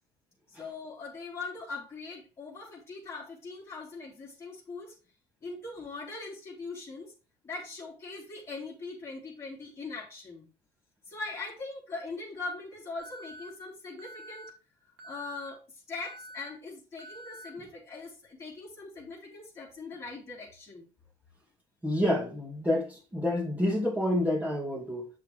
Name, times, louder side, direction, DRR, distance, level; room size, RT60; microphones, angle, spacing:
voice 1, 0.5-4.9 5.4-7.1 7.4-10.5 11.0-14.5 15.0-20.9, left 3 dB, 15° left, 3.7 m, -41 dB
Alarm, 13.0-13.5 14.0-14.5 15.0-15.5 16.0-16.5 17.0-17.5, right 1 dB, 70° right, 2.4 m, -47 dB
voice 2, 21.8-25.1, left 1 dB, 10° right, 2.4 m, -28 dB
8.2 x 6.6 x 3.3 m
cardioid pair, 180°, 19 cm